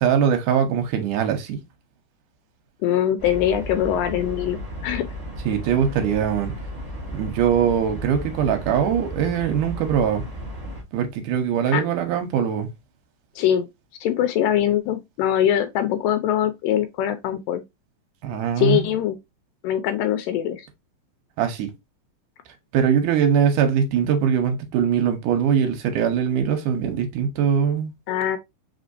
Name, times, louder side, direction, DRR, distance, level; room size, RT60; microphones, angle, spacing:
voice 1, 0.0-1.6 5.5-6.5 7.1-10.2 10.9-12.7 18.2-18.9 21.4-21.7 22.7-27.9, right 8 dB, 75° right, 2.2 m, -22 dB
voice 2, 2.8-5.1 11.7-11.8 13.4-13.7 14.0-17.6 18.6-19.2 19.6-20.7 28.1-28.4, left 10 dB, 80° left, 2.2 m, -22 dB
sound 1, 3.2-10.8, equal, 25° right, 0.5 m, -34 dB
5.0 x 3.6 x 2.6 m
omnidirectional pair, 4.1 m